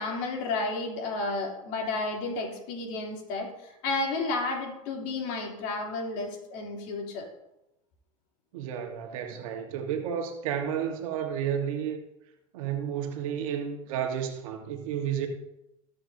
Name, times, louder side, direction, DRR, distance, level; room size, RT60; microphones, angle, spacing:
voice 1, 0.0-7.3, left 3 dB, 65° left, 3.3 m, -32 dB
voice 2, 8.5-12.0 12.5-15.3, right 8 dB, 75° right, 1.5 m, -31 dB
19.5 x 6.8 x 2.8 m
hypercardioid pair, 100°, 18 cm